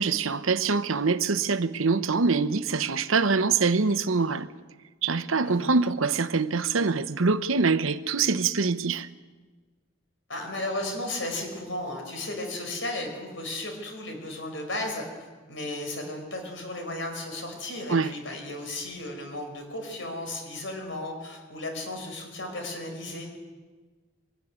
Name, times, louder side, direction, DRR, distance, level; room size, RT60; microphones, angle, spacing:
voice 1, 0.0-4.5 5.0-9.1 17.9-18.1, right 4 dB, 90° right, 0.9 m, -24 dB
voice 2, 10.3-15.0 15.5-23.4, left 1 dB, 70° left, 4.9 m, -34 dB
22.5 x 13.0 x 9.7 m
head